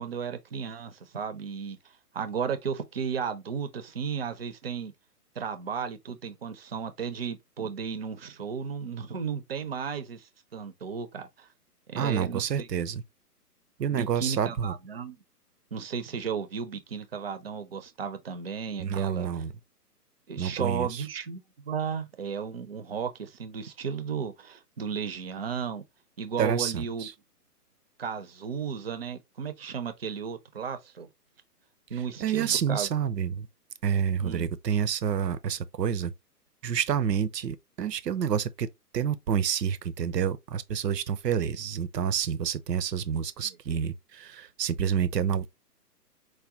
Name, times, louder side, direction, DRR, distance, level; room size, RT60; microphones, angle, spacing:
voice 1, 0.0-1.8 2.1-4.9 5.4-11.5 11.9-12.7 13.9-15.2 15.7-19.4 20.3-25.8 26.2-27.1 28.0-31.1 31.9-32.9 34.2-34.5 43.4-43.6, right 6 dB, 40° right, 0.5 m, -34 dB
voice 2, 11.9-13.0 13.8-14.7 18.8-19.5 20.4-21.0 26.4-27.1 32.2-33.5 33.8-36.1 36.6-38.7 38.9-45.5, right 8 dB, 80° right, 0.8 m, -28 dB
4.8 x 2.2 x 3.5 m
hypercardioid pair, 160°, 48 cm